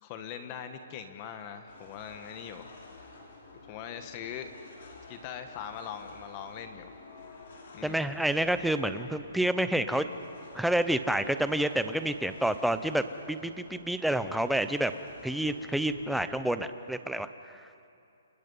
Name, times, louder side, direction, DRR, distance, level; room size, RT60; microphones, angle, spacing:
voice 1, 0.0-2.7 3.7-4.5 5.1-6.9 7.7-8.1, left 8 dB, 25° left, 8 dB, 1.2 m, -41 dB
sound 1, 1.7-16.3, left 3 dB, 50° left, 5.4 m, -50 dB
voice 2, 7.8-10.1 10.5-14.9 15.2-17.6, right 1 dB, ahead, 10 dB, 0.6 m, -29 dB
29.0 x 28.0 x 5.5 m, 2.7 s
hypercardioid pair, 170°, 0 cm